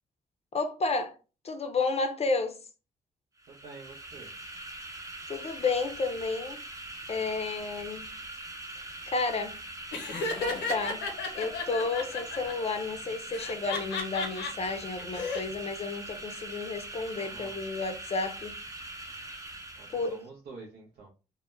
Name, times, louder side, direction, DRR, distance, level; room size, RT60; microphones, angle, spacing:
voice 1, 0.5-1.2 1.4-2.6 5.3-6.6 7.1-8.0 9.1-9.6 10.2-11.0 11.3-18.5 19.9-20.2, left 3 dB, 40° left, 0.5 m, -31 dB
sound 1, 3.4-20.3, right 2 dB, 20° right, 0.7 m, -42 dB
voice 2, 3.5-4.3 17.1-17.6 19.8-21.1, right 4 dB, 65° right, 0.6 m, -48 dB
Laughter, 9.9-12.5 13.3-14.5 15.0-15.4, left 4 dB, 85° left, 0.5 m, -33 dB
2.1 x 2.0 x 3.0 m
hypercardioid pair, 45°, 17 cm